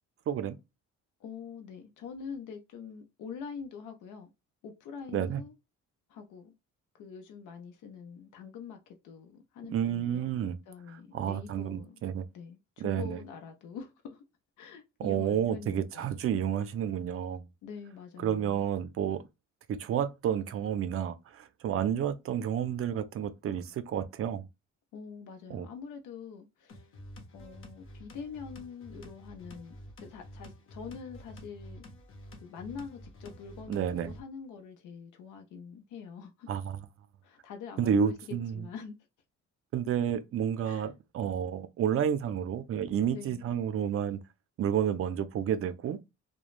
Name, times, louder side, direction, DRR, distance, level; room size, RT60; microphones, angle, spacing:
voice 1, 0.3-0.6 5.1-5.4 9.7-10.6 11.1-12.3 12.8-13.2 15.0-17.5 18.2-19.2 19.7-24.5 25.5-25.7 33.7-34.1 36.5-36.8 37.8-38.6 39.7-44.2 44.6-46.0, right 9 dB, 50° right, 0.5 m, -30 dB
voice 2, 1.2-4.3 4.6-5.5 6.1-6.5 7.0-10.3 10.7-12.0 12.3-14.2 14.6-16.1 17.6-18.6 24.9-26.9 27.3-31.9 32.4-36.5 37.2-38.9 40.6-40.9 43.1-43.5, left 6 dB, 85° left, 0.7 m, -45 dB
sound 1, 26.7-34.2, equal, 45° left, 0.8 m, -49 dB
3.0 x 2.2 x 2.4 m
cardioid pair, 125°, 30 cm